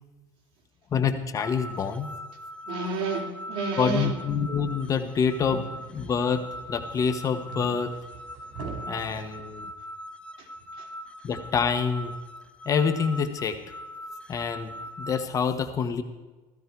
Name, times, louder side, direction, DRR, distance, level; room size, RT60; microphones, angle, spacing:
voice 1, 0.9-2.1 3.8-7.9 8.9-9.7 11.2-12.1 12.6-13.6 14.3-16.0, left 6 dB, 30° left, 9 dB, 1.1 m, -27 dB
sound 1, 1.4-15.3, equal, 10° left, 0.9 m, -41 dB
voice 2, 2.6-4.3 9.0-9.3 10.4-10.9, right 4 dB, 50° right, 1 dB, 3.7 m, -32 dB
sound 2, 4.6-9.6, right 4 dB, 75° right, 4.9 m, -43 dB
16.0 x 15.0 x 4.7 m, 1.2 s
cardioid pair, 140°, 11 cm